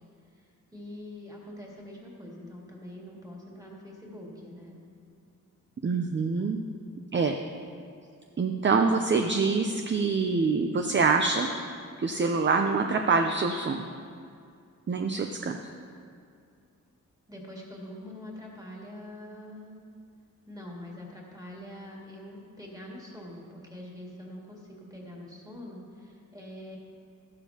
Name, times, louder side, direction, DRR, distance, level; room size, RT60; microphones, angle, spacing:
voice 1, 0.3-4.8 17.3-19.9 20.5-26.8, left 1 dB, 10° right, -3 dB, 2.2 m, -44 dB
voice 2, 5.8-6.6 7.1-7.4 8.4-11.5 12.0-13.9 14.9-15.7, right 4 dB, 35° right, 5 dB, 0.5 m, -25 dB
12.5 x 11.5 x 2.9 m, 2.4 s
wide cardioid pair, 100°, 32 cm